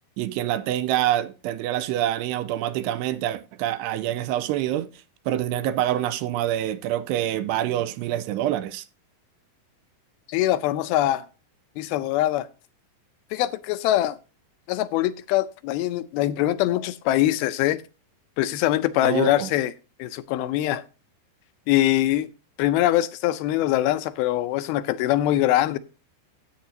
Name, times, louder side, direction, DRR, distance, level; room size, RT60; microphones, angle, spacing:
voice 1, 0.2-4.9 5.3-8.8 19.0-19.5, right 12 dB, 85° right, 2.8 m, -26 dB
voice 2, 10.3-11.3 11.8-12.5 13.3-14.2 14.7-17.8 18.4-19.7 20.0-20.8 21.7-22.3 22.6-25.8, left 14 dB, 80° left, 2.3 m, -23 dB
13.5 x 9.0 x 2.7 m
omnidirectional pair, 4.8 m